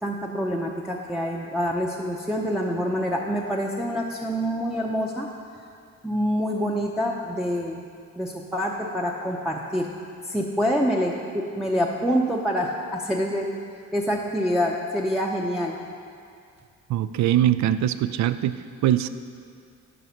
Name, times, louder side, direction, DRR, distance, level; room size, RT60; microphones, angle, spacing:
voice 1, 0.0-5.3 6.0-7.8 8.2-9.9 10.3-13.5 13.9-15.8, equal, ahead, -3 dB, 0.6 m, -26 dB
voice 2, 16.9-18.6 18.8-19.1, right 12 dB, 65° right, 13 dB, 0.4 m, -22 dB
9.4 x 4.9 x 5.8 m, 2.3 s
cardioid pair, 90°, 30 cm